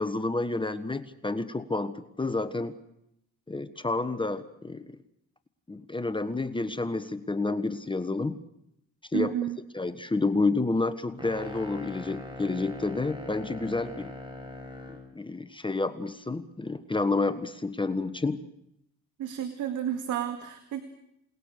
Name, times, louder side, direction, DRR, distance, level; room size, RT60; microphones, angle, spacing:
voice 1, 0.0-2.7 3.5-5.0 5.7-8.4 9.1-9.3 9.7-14.1 14.9-18.4, left 3 dB, 15° left, 11 dB, 1.3 m, -29 dB
voice 2, 9.1-9.6 19.2-20.8, right 10 dB, 80° right, 8 dB, 2.2 m, -31 dB
sound 1, 11.2-15.1, left 1 dB, 15° right, 5.6 m, -41 dB
28.5 x 19.5 x 6.7 m, 0.78 s
cardioid pair, 90°, 30 cm